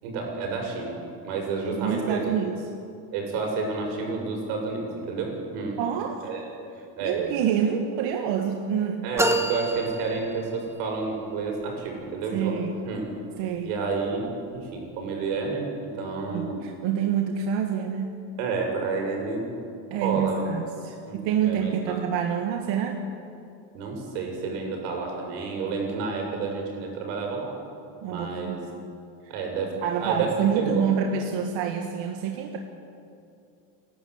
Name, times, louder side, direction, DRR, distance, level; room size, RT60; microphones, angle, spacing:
voice 1, 0.0-1.0 1.2-2.3 3.1-5.8 6.2-6.4 7.0-7.3 9.0-12.6 12.9-13.0 13.7-16.6 18.4-19.5 19.9-20.4 21.1-22.0 23.7-27.5 28.1-28.6 29.3-30.8, right 4 dB, 80° right, 1 dB, 6.9 m, -30 dB
voice 2, 1.7-2.6 5.8-6.3 7.0-9.1 12.3-12.8 13.4-13.7 16.3-18.1 19.9-23.0 28.0-28.6 29.2-29.3 29.8-32.6, right 8 dB, 65° right, 3 dB, 1.7 m, -27 dB
sound 1, 9.2-10.8, right 1 dB, 5° right, 1.2 m, -27 dB
28.5 x 12.5 x 8.0 m, 2.7 s
cardioid pair, 140°, 49 cm